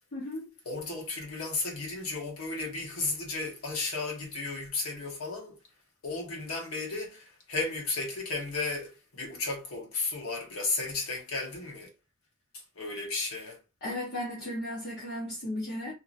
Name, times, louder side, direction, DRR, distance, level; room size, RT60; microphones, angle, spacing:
voice 1, 0.1-0.5 13.8-15.9, left 1 dB, 50° left, 0.9 m, -35 dB
voice 2, 0.6-5.6 6.0-11.9 12.8-13.6, left 3 dB, 75° left, 1.1 m, -34 dB
2.8 x 2.5 x 2.5 m
head